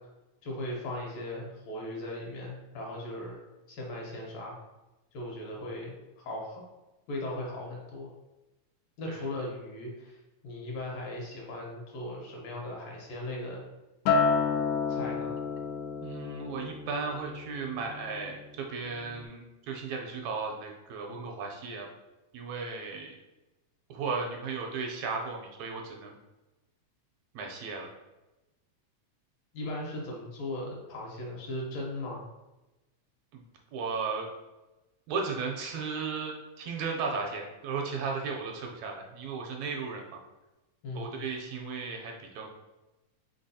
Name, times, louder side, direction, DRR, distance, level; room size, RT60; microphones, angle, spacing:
voice 1, 0.4-3.4 3.7-4.6 5.1-5.9 6.2-6.6 7.1-8.1 9.0-10.2 10.4-13.6 14.7-15.4 29.5-32.2 40.8-41.2, left 1 dB, 70° left, -2 dB, 1.9 m, -38 dB
Acoustic guitar, 14.1-18.5 18.9-19.3, left 5 dB, 90° left, 2.0 m, -30 dB
voice 2, 16.0-21.9 22.3-23.2 23.9-26.2 27.3-27.9 33.3-33.4 33.7-34.3 35.1-40.2 40.9-42.5, right 4 dB, 80° right, 1 dB, 1.7 m, -35 dB
4.5 x 3.8 x 2.7 m, 1.1 s
omnidirectional pair, 3.3 m